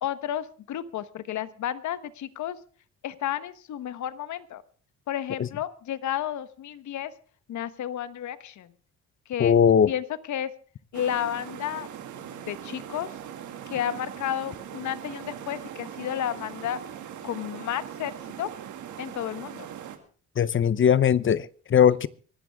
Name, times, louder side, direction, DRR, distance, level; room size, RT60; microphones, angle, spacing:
voice 1, 0.0-2.6 3.0-4.6 5.1-7.1 7.5-8.7 9.3-9.6 9.9-10.5 10.9-11.9 12.2-13.1 13.7-16.8 17.2-18.1 18.4-18.5 19.0-19.7, left 10 dB, 70° left, 1.2 m, -32 dB
voice 2, 9.4-9.9 20.4-22.1, left 8 dB, 40° left, 0.7 m, -19 dB
sound 1, 10.9-20.0, right 10 dB, 80° right, 2.2 m, -40 dB
24.0 x 12.0 x 3.6 m
cardioid pair, 90°, 30 cm